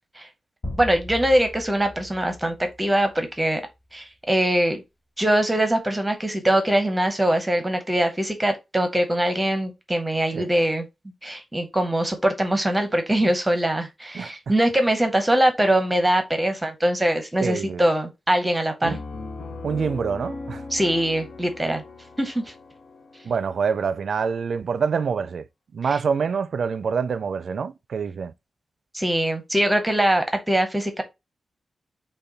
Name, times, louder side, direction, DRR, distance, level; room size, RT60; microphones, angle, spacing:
sound 1, 0.6-3.5, left 1 dB, 50° left, 2.8 m, -38 dB
voice 1, 0.8-3.6 3.9-4.8 5.2-10.9 11.2-19.0 20.7-21.8 22.2-22.5 25.9-26.0 28.9-31.0, right 1 dB, 10° right, 0.7 m, -22 dB
voice 2, 17.4-17.8 18.8-19.0 19.6-20.6 23.2-25.4 25.7-28.3, right 6 dB, 65° right, 0.4 m, -26 dB
Piano, 18.8-24.4, left 3 dB, 80° left, 0.9 m, -39 dB
5.6 x 2.2 x 3.9 m
wide cardioid pair, 130°, 0 cm